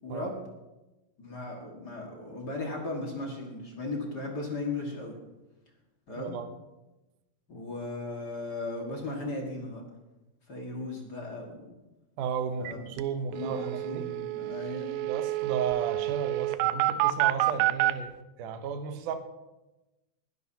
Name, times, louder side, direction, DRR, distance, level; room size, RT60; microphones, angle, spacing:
voice 1, 0.0-0.3 1.2-5.2 6.1-6.4 7.5-9.8 10.5-11.7 12.6-12.8 13.3-15.0, left 2 dB, 40° left, -1 dB, 1.7 m, -36 dB
voice 2, 6.2-6.5 12.2-14.1 15.1-19.2, right 7 dB, 70° right, 7 dB, 2.3 m, -34 dB
sound 1, 12.7-12.8 13.0-13.1 13.3-17.9, right 17 dB, 90° right, 2.4 m, -28 dB
20.5 x 11.0 x 2.8 m, 1.0 s
omnidirectional pair, 4.0 m